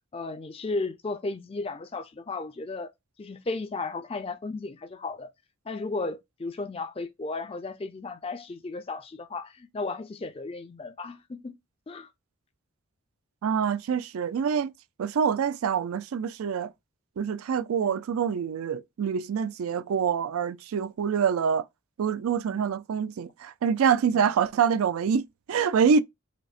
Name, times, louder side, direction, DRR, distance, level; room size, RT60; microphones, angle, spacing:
voice 1, 0.1-2.9 3.2-5.3 5.7-11.6 11.9-12.1 17.8-18.0 22.5-22.8 24.1-24.2, left 3 dB, 25° left, 0.3 m, -35 dB
voice 2, 13.4-14.7 15.0-16.7 17.2-21.7 22.0-26.0, right 7 dB, 90° right, 0.4 m, -26 dB
5.1 x 2.0 x 2.4 m
head